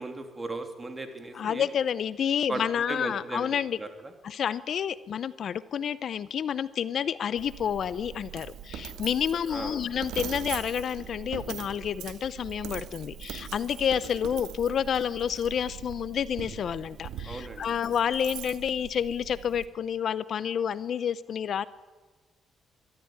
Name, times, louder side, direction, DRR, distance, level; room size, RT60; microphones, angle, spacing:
voice 1, 0.0-1.7 2.5-3.5 3.8-4.1 9.5-9.8 17.2-17.6, right 2 dB, 20° right, 6 dB, 3.0 m, -36 dB
voice 2, 1.3-3.8 4.2-21.7, left 8 dB, 60° left, 17 dB, 0.7 m, -29 dB
Coin (dropping), 7.4-19.7, right 9 dB, 90° right, 1.7 m, -41 dB
23.5 x 13.0 x 9.6 m, 1.3 s
cardioid pair, 90°, 0 cm